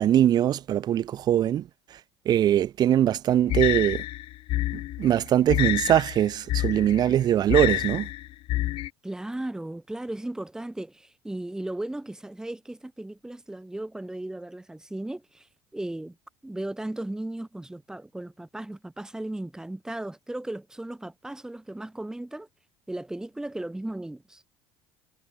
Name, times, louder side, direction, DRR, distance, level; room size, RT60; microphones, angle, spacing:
voice 1, 0.0-1.7 2.3-4.0 4.7-8.1, right 11 dB, 40° right, 0.4 m, -22 dB
sound 1, 3.5-8.9, left 15 dB, 60° left, 1.0 m, -28 dB
voice 2, 9.0-15.5 15.7-16.2 16.4-22.5 22.9-24.4, right 1 dB, 5° right, 1.0 m, -36 dB
supercardioid pair, 110°, 11 cm